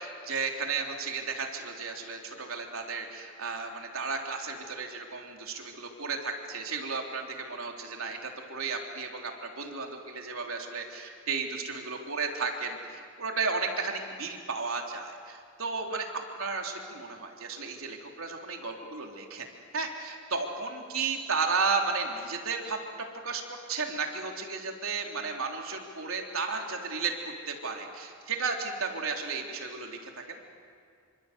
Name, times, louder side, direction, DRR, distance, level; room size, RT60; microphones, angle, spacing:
voice 1, 0.0-16.1 16.4-19.5 19.7-30.2, right 4 dB, 80° right, 2 dB, 3.6 m, -34 dB
28.0 x 25.5 x 8.2 m, 2.3 s
head